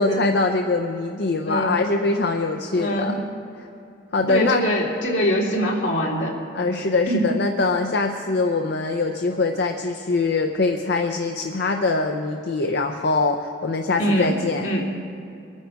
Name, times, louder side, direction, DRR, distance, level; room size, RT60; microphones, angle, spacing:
voice 1, 0.0-3.1 4.1-4.6 6.6-14.7, left 3 dB, 60° left, 5 dB, 0.7 m, -23 dB
voice 2, 1.5-1.8 2.7-3.2 4.3-6.3 7.1-7.3 14.0-14.3 14.6-14.9, equal, 80° left, -2 dB, 2.6 m, -23 dB
23.0 x 9.7 x 4.7 m, 2.7 s
head